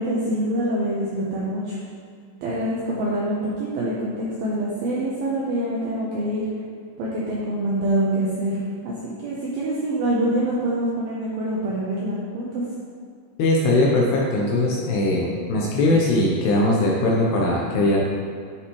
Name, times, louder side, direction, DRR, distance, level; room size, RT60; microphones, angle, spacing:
voice 1, 0.0-1.8 2.4-6.4 7.0-8.6 8.8-8.9 9.2-12.6, right 1 dB, 85° right, -5 dB, 2.1 m, -25 dB
voice 2, 13.4-18.0, left 2 dB, 80° left, -3 dB, 2.5 m, -20 dB
10.5 x 6.7 x 3.1 m, 2.3 s
omnidirectional pair, 5.5 m